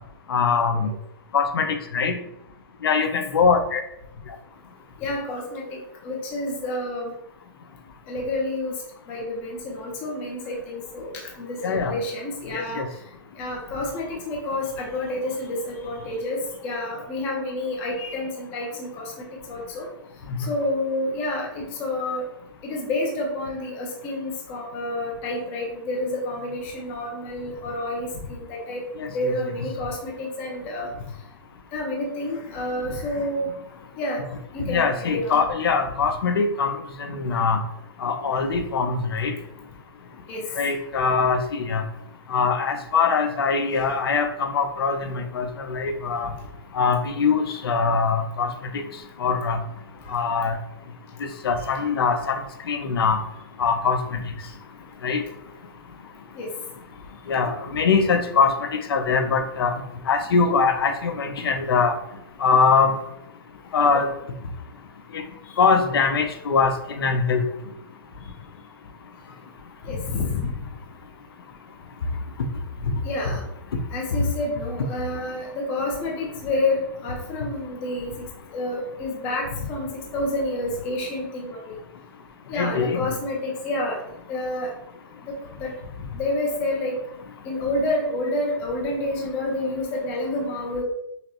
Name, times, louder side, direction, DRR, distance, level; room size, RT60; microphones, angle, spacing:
voice 1, 0.3-0.9 1.3-2.1 2.8-3.8 11.6-12.0 12.5-12.9 20.3-20.4 29.0-29.3 34.6-36.8 37.1-37.6 38.0-39.3 40.6-41.8 42.3-46.3 46.7-48.8 49.2-49.6 50.1-50.5 51.2-52.4 52.7-53.2 53.6-54.0 55.0-55.2 57.3-58.5 58.9-59.7 60.1-61.9 62.4-63.0 63.7-64.1 65.1-65.2 65.6-67.4 73.7-73.8 82.5-83.1, left 5 dB, 80° left, 7 dB, 0.6 m, -22 dB
voice 2, 5.0-5.8 6.0-7.1 8.1-8.7 9.1-12.8 13.3-16.4 16.6-19.1 19.5-19.9 20.5-22.3 22.6-28.8 29.1-30.9 31.7-33.5 34.0-34.2 34.5-35.4 40.3-40.7 43.7-43.9 56.3-56.5 68.2-68.3 69.8-70.5 73.0-73.4 73.9-78.1 78.5-79.9 80.1-81.7 82.5-84.0 84.3-84.7 85.6-85.7 86.1-87.0 87.4-90.8, left 1 dB, 15° left, -1 dB, 0.5 m, -29 dB
5.7 x 2.1 x 2.9 m, 0.79 s
hypercardioid pair, 180°, 12 cm